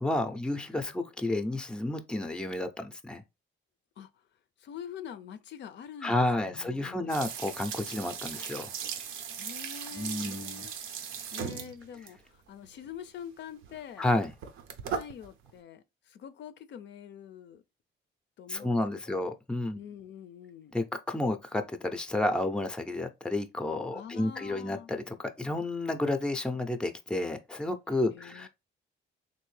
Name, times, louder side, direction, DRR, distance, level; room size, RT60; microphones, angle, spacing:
voice 1, 0.0-3.2 6.0-8.7 9.9-10.7 14.0-14.3 18.5-19.8 20.7-28.5, left 2 dB, 5° left, 0.4 m, -31 dB
voice 2, 4.6-7.4 9.3-14.0 14.9-17.6 18.4-18.8 19.1-19.3 19.7-20.7 23.9-24.9 28.0-28.5, left 8 dB, 65° left, 0.4 m, -45 dB
sound 1, 7.1-12.2 12.6-12.9 13.6-13.8 14.1-15.5, right 7 dB, 85° right, 0.6 m, -38 dB
3.4 x 2.7 x 3.1 m
cardioid pair, 90°, 20 cm